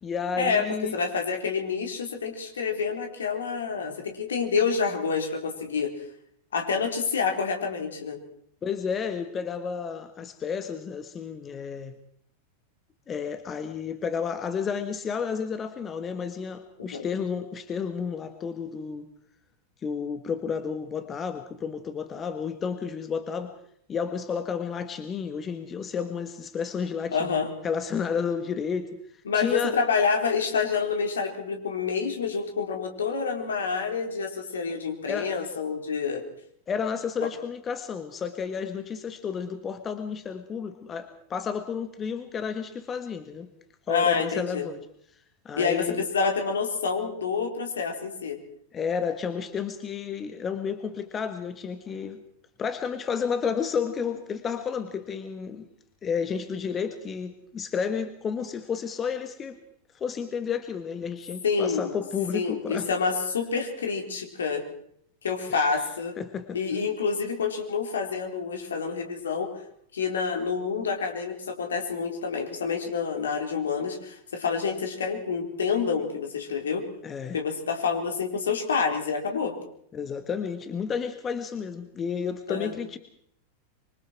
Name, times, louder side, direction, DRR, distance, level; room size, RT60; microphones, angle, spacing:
voice 1, 0.0-1.0 8.6-11.9 13.1-19.1 19.8-23.5 23.9-29.0 29.3-29.8 35.1-35.3 36.7-43.5 43.9-44.8 45.4-46.1 48.7-52.2 52.6-55.7 56.0-59.6 59.9-62.9 65.5-65.7 66.2-66.6 77.0-77.4 79.9-83.0, left 6 dB, 25° left, 9 dB, 1.7 m, -31 dB
voice 2, 0.9-5.9 6.5-8.2 16.9-17.0 27.1-27.5 29.3-36.2 43.9-44.7 45.6-48.4 61.4-61.9 62.3-64.6 65.2-66.2 66.5-69.5 69.9-76.8 77.3-79.5 82.5-82.7, left 5 dB, 65° left, 3 dB, 4.2 m, -28 dB
25.5 x 24.5 x 4.6 m, 0.66 s
figure-of-eight pair, 90°, 0 cm